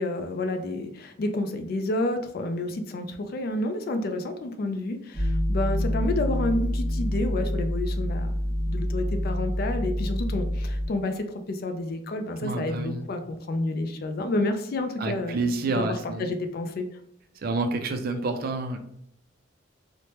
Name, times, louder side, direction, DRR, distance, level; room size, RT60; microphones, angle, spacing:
voice 1, 0.0-8.3 8.7-16.9, left 2 dB, 50° left, 7 dB, 0.3 m, -30 dB
sound 1, 5.1-10.9, equal, 5° right, 1.0 m, -27 dB
voice 2, 12.4-13.1 15.0-16.3 17.4-18.8, right 3 dB, 50° right, 7 dB, 0.3 m, -28 dB
3.1 x 2.1 x 2.8 m, 0.72 s
head